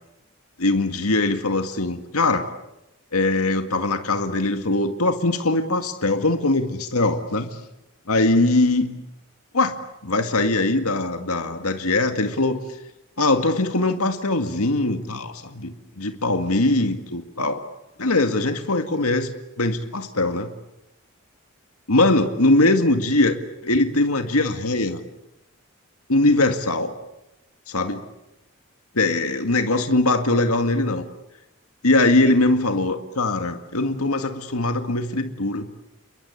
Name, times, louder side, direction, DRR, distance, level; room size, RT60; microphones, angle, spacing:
voice 1, 0.6-2.5 3.1-7.6 8.1-8.9 9.5-9.8 10.0-12.6 13.2-17.6 18.0-19.3 19.6-20.5 21.9-23.4 23.6-25.0 26.1-26.9 27.7-28.0 28.9-31.1 31.8-35.7, left 2 dB, 85° left, 7 dB, 2.0 m, -21 dB
30.0 x 22.0 x 8.7 m, 0.91 s
head